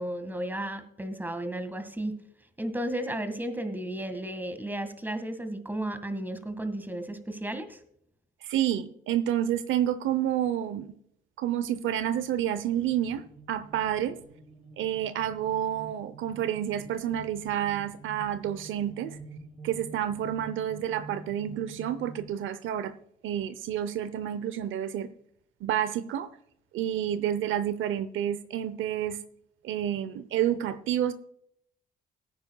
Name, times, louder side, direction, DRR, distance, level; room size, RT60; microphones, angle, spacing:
voice 1, 0.0-2.1 2.6-7.8, right 1 dB, 10° right, 9 dB, 1.8 m, -33 dB
voice 2, 8.4-10.9 11.4-13.2 13.5-14.2 14.8-19.2 19.6-22.9 23.2-25.1 25.6-26.3 26.7-29.2 29.6-31.1, right 10 dB, 80° right, 13 dB, 0.8 m, -29 dB
sound 1, 12.8-22.3, right 3 dB, 35° right, 2.1 m, -48 dB
18.5 x 9.5 x 2.3 m, 0.70 s
cardioid pair, 90°, 20 cm